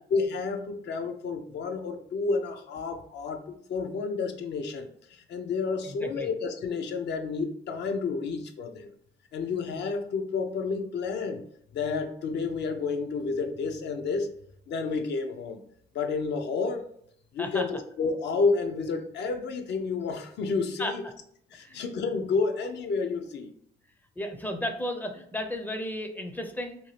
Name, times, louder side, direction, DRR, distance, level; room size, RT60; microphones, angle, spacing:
voice 1, 0.1-8.9 9.3-11.4 11.7-14.3 14.7-15.6 15.9-16.9 17.3-21.0 21.5-23.5, left 4 dB, 60° left, 6 dB, 0.5 m, -30 dB
voice 2, 5.8-6.3 17.4-17.6 20.8-20.9 21.6-21.8 24.2-26.8, left 1 dB, 10° left, 5 dB, 0.4 m, -34 dB
2.7 x 2.3 x 3.1 m, 0.68 s
cardioid pair, 90°, 20 cm